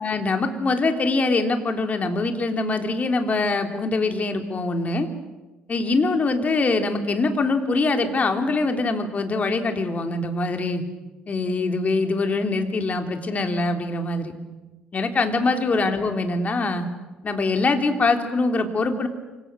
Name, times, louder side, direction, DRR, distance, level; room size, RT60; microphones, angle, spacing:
voice 1, 0.0-5.1 5.7-10.8 11.3-14.3 14.9-16.9 17.2-19.1, left 3 dB, 35° left, 5 dB, 3.4 m, -23 dB
27.5 x 26.0 x 6.4 m, 1.1 s
hypercardioid pair, 50°, 4 cm